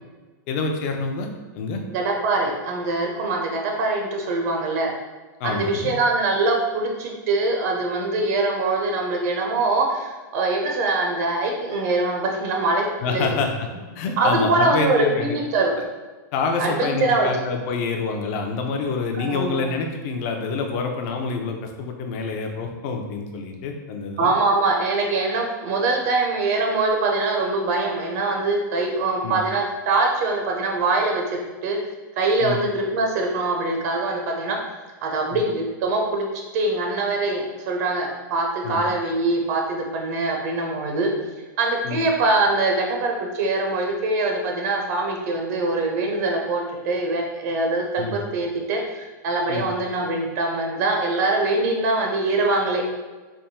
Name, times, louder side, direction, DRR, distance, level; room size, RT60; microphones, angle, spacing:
voice 1, 0.5-1.3 1.5-1.8 5.4-5.9 13.0-13.7 14.0-15.4 16.3-24.3 29.2-29.4 32.4-32.6 35.3-35.4 38.6-38.8 41.8-42.0 48.0-48.2 49.5-49.7, left 4 dB, 40° left, 3 dB, 0.5 m, -27 dB
voice 2, 1.9-4.9 5.4-13.4 14.2-15.7 16.6-17.3 19.2-19.6 24.2-31.8 32.2-34.6 35.0-36.2 36.5-41.1 41.6-52.8, right 2 dB, 50° right, 1 dB, 0.7 m, -23 dB
3.4 x 2.2 x 4.2 m, 1.3 s
hypercardioid pair, 145°, 11 cm